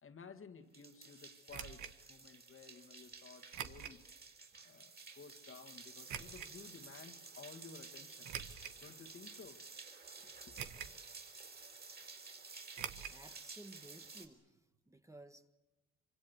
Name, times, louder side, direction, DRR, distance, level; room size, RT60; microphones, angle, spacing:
voice 1, 0.0-4.1 4.6-8.3 8.8-9.6 10.2-10.5, left 5 dB, 45° left, 2.2 m, -55 dB
sound 1, 0.7-14.3, right 4 dB, 30° right, 5.0 m, -53 dB
sound 2, 1.5-1.9 3.5-4.0 4.6-4.7 6.1-6.5 8.2-8.8 9.4-9.5 10.6-11.0 11.3-11.4 12.7-13.2 13.5-13.6 13.8-13.9, right 9 dB, 75° right, 1.6 m, -45 dB
voice 2, 13.1-14.6 14.9-15.5, right 1 dB, 10° right, 1.6 m, -56 dB
25.5 x 25.0 x 8.3 m
cardioid pair, 90°, 30 cm